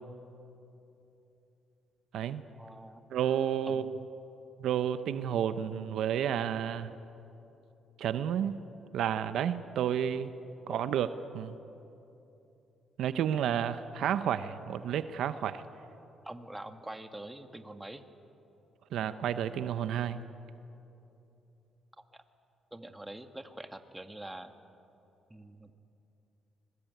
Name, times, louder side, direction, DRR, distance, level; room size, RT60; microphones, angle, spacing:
voice 1, 2.6-3.0 3.6-4.0 10.7-10.8 16.2-18.0 22.0-22.2 22.7-24.5 25.3-25.7, right 1 dB, 10° right, 7 dB, 1.7 m, -45 dB
voice 2, 3.1-4.0 4.6-6.9 8.0-8.6 8.9-10.3 10.7-11.6 13.0-15.6 18.9-20.2, right 9 dB, 75° right, 12 dB, 0.8 m, -31 dB
25.0 x 20.5 x 9.3 m, 2.9 s
cardioid pair, 90°, 0 cm